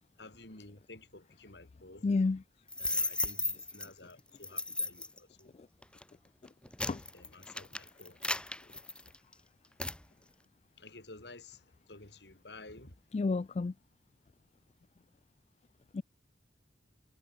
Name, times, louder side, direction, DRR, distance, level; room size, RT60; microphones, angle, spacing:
voice 1, 0.2-2.1 2.8-5.5 7.1-8.2 10.8-12.9, left 2 dB, 70° left, 3.9 m, -52 dB
voice 2, 2.0-2.4 6.9-7.0 13.1-13.7 15.9-16.0, left 3 dB, 35° left, 0.3 m, -30 dB
sound 1, 2.7-3.9 4.4-5.2 5.8-6.0 6.5-9.3 9.8-10.0, left 2 dB, 5° left, 2.6 m, -35 dB
head